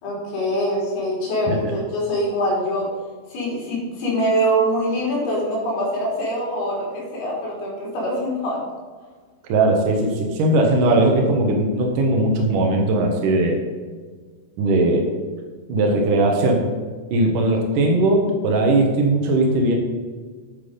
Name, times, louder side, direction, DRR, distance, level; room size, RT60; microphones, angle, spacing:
voice 1, 0.0-2.9 3.3-8.6, equal, 55° left, -5 dB, 5.3 m, -24 dB
voice 2, 9.5-13.6 14.6-15.1 15.7-16.6 17.1-19.8, right 2 dB, 85° right, 1 dB, 1.8 m, -19 dB
9.2 x 9.0 x 5.2 m, 1.5 s
omnidirectional pair, 5.8 m